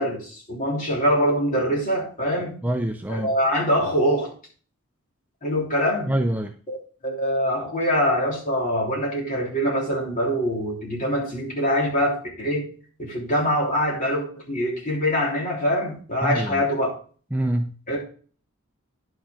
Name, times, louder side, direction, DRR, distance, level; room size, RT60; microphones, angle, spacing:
voice 1, 0.0-2.5 3.1-4.3 5.4-6.1 6.7-6.8 7.0-12.7 13.0-16.9 17.9-18.0, equal, 40° left, 3.2 m, -24 dB
voice 2, 2.6-3.3 6.1-6.6 16.2-16.6 17.3-17.7, right 1 dB, 10° right, 0.4 m, -25 dB
10.5 x 6.4 x 3.8 m
head